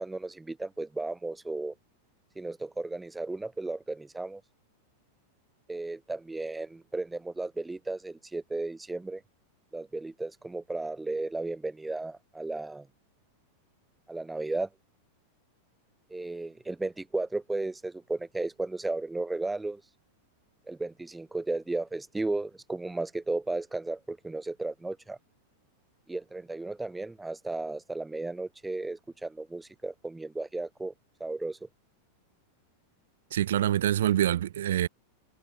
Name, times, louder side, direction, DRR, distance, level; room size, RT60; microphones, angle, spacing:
voice 1, 0.0-1.7 2.4-4.4 5.7-9.2 9.7-12.9 14.1-14.7 16.1-19.8 20.7-25.2 26.1-30.9 31.2-31.7, right 2 dB, 5° right, 3.8 m, -34 dB
voice 2, 33.3-34.9, right 11 dB, 60° right, 0.4 m, -25 dB
figure-of-eight pair, 90°, 0 cm